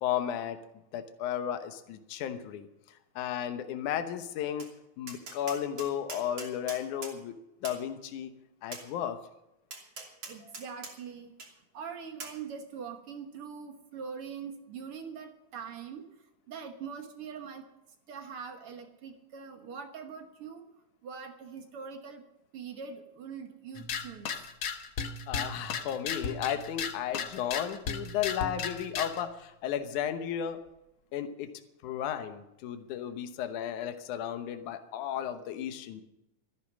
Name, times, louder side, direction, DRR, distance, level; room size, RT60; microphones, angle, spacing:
voice 1, 0.0-0.6 0.9-2.7 3.2-4.7 5.0-8.3 8.6-9.2 25.3-30.6 31.1-31.5 31.8-36.0, left 10 dB, 80° left, 8 dB, 2.5 m, -34 dB
Tap, 4.6-4.7 5.1-7.2 7.6-7.8 8.7-8.9 9.7-10.9 11.4-11.5 12.2-12.4, right 3 dB, 40° right, 3.4 m, -42 dB
voice 2, 10.2-11.3 11.7-16.1 16.5-17.7 18.1-20.7 21.0-22.2 22.5-24.4, right 6 dB, 55° right, 6 dB, 1.9 m, -43 dB
sound 1, 23.7-29.2, left 6 dB, 55° left, 1.5 m, -36 dB
14.0 x 12.0 x 6.2 m, 0.87 s
omnidirectional pair, 3.5 m